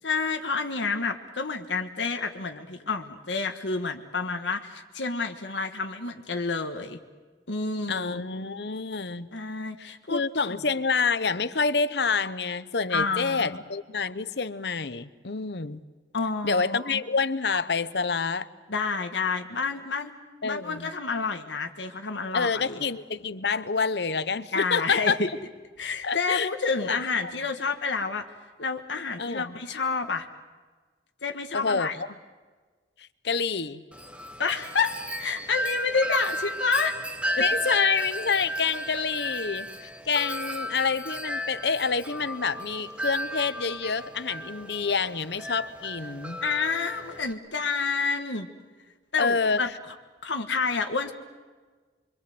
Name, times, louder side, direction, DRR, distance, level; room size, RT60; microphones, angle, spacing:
voice 1, 0.0-7.0 7.5-8.2 9.3-10.2 10.4-10.6 12.9-13.6 16.1-17.0 18.7-20.1 20.4-22.8 24.5-25.3 25.8-28.2 28.6-30.3 31.2-32.0 34.4-37.0 37.4-37.5 46.4-48.5 49.1-49.7 50.2-51.1, left 4 dB, 85° left, 5 dB, 1.6 m, -29 dB
voice 2, 7.9-9.3 9.8-15.8 16.4-18.5 20.4-20.9 22.3-25.2 26.0-26.5 26.9-27.0 29.2-29.6 31.5-32.1 33.0-33.8 37.4-39.7 40.1-46.4 49.2-49.6, left 5 dB, 65° left, 15 dB, 0.9 m, -27 dB
Wind chime, 33.9-47.3, equal, 5° right, 1.0 m, -34 dB
25.5 x 24.5 x 7.8 m, 1.4 s
head